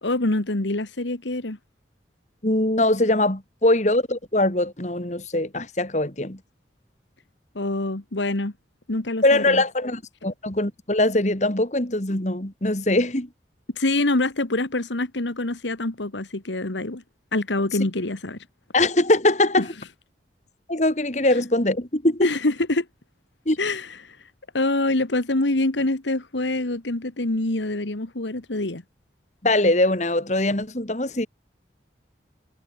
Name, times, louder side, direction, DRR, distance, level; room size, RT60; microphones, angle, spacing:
voice 1, 0.0-1.6 7.6-8.5 8.9-9.6 13.7-17.0 17.3-18.4 19.6-19.7 22.2-22.9 23.6-24.2 24.5-28.8, left 2 dB, 90° left, 1.8 m, -25 dB
voice 2, 2.4-6.4 9.2-13.3 18.7-19.7 20.7-22.3 23.5-23.6 29.4-31.3, left 1 dB, 40° left, 2.5 m, -22 dB
head